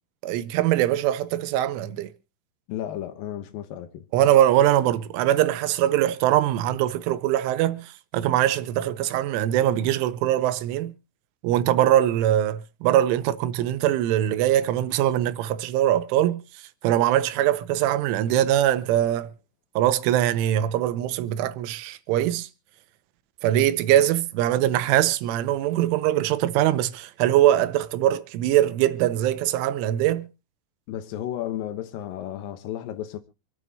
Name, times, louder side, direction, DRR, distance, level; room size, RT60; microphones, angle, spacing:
voice 1, 0.2-2.1 4.1-10.9 11.4-16.4 16.8-19.3 19.8-22.5 23.4-30.3, right 12 dB, 85° right, 3.3 m, -22 dB
voice 2, 2.7-4.0 30.9-33.2, left 11 dB, 85° left, 2.0 m, -33 dB
27.0 x 9.2 x 2.8 m
omnidirectional pair, 5.6 m